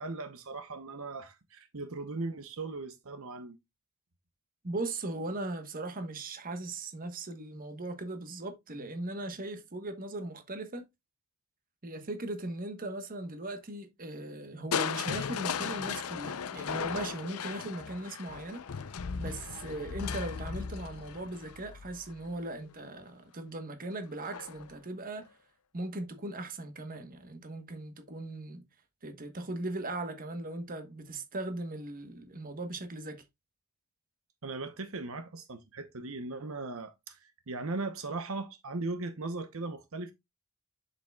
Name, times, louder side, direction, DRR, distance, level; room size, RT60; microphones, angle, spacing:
voice 1, 0.0-3.6 34.4-40.1, right 3 dB, 65° right, 0.9 m, -38 dB
voice 2, 4.6-10.9 11.8-18.6 19.2-25.3 25.7-28.7 29.0-33.2, right 2 dB, 40° right, 1.2 m, -38 dB
Crushing, 14.7-22.7 24.2-24.7 25.2-25.3, left 6 dB, 75° left, 0.6 m, -37 dB
7.4 x 6.9 x 2.3 m
head